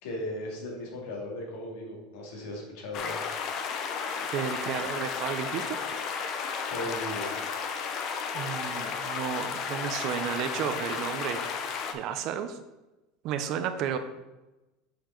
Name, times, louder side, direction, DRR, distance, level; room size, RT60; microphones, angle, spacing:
voice 1, 0.0-3.2 6.6-7.3, left 1 dB, 70° left, -2 dB, 2.1 m, -37 dB
sound 1, 2.9-11.9, left 6 dB, 35° left, 0.6 m, -33 dB
voice 2, 4.3-5.8 8.3-11.4 11.9-12.6 13.2-14.0, right 8 dB, 45° right, 9 dB, 0.5 m, -32 dB
7.1 x 4.6 x 3.8 m, 1.0 s
supercardioid pair, 165°, 0 cm